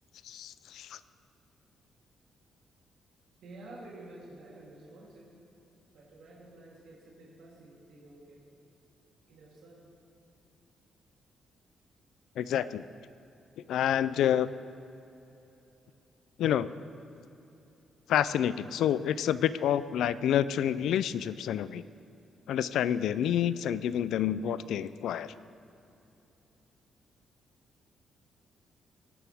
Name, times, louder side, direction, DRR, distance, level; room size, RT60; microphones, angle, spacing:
voice 1, 0.2-1.0 12.4-12.8 13.7-14.5 16.4-16.7 18.1-21.8 22.5-25.3, left 10 dB, 80° left, 15 dB, 0.3 m, -28 dB
voice 2, 3.4-5.3 5.9-8.4 9.3-9.8 15.9-16.0, right 2 dB, 90° right, -6 dB, 3.1 m, -50 dB
18.0 x 10.5 x 3.5 m, 2.9 s
cardioid pair, 170°, 0 cm